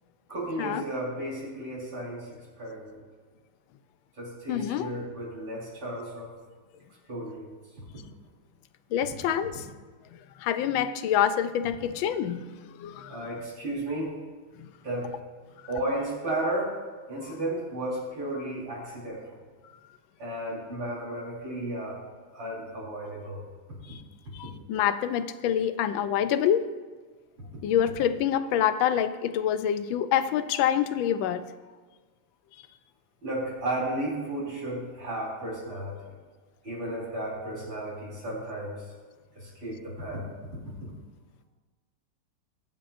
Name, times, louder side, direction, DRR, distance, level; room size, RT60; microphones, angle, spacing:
voice 1, 0.3-3.0 4.2-6.3 7.1-7.6 13.1-14.1 14.8-15.1 15.7-16.8 17.1-19.2 20.2-22.0 22.3-23.4 33.2-36.0 36.6-38.8 39.3-40.3, right 1 dB, 80° right, -6 dB, 5.0 m, -33 dB
voice 2, 4.5-4.9 8.9-9.7 10.4-13.2 14.6-14.7 23.8-24.0 24.3-26.7 27.6-31.5, left 9 dB, 85° left, 12 dB, 1.4 m, -26 dB
23.0 x 7.8 x 2.6 m, 1.4 s
omnidirectional pair, 2.1 m